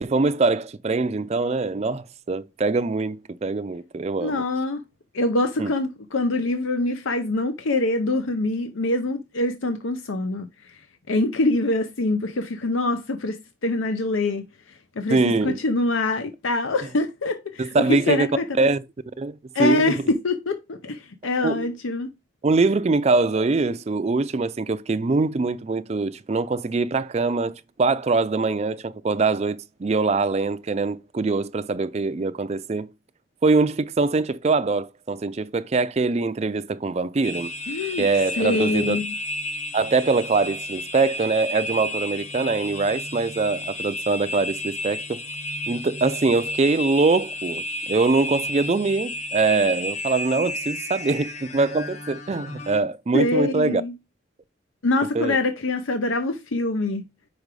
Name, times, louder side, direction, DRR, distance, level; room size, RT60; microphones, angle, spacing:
voice 1, 0.0-4.4 5.6-5.7 15.1-15.6 17.6-18.3 18.6-18.8 19.2-19.9 21.4-21.7 22.4-32.9 33.4-37.5 38.0-39.0 39.7-45.2 45.7-53.8 55.1-55.4, right 3 dB, 30° right, 0.4 m, -23 dB
voice 2, 4.2-4.8 5.1-10.7 11.1-14.5 15.0-18.4 19.5-22.1 37.7-38.1 38.4-39.0 53.1-53.9 54.8-57.1, left 2 dB, 85° left, 0.7 m, -24 dB
sound 1, 37.2-52.8, left 1 dB, 35° left, 0.6 m, -32 dB
5.2 x 4.7 x 4.8 m
head